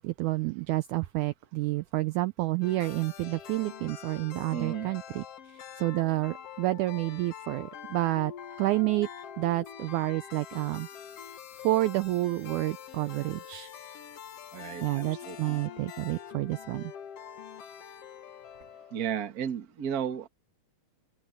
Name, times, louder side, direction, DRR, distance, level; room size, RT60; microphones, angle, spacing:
voice 1, 0.0-8.3 8.6-9.1 9.4-10.9 11.6-13.7 14.8-16.9, right 18 dB, 80° right, 1.8 m, -29 dB
sound 1, 2.6-19.2, left 9 dB, 55° left, 1.9 m, -45 dB
voice 2, 4.5-4.9 14.5-15.6 18.9-20.3, right 8 dB, 45° right, 1.2 m, -34 dB
open air
omnidirectional pair, 3.9 m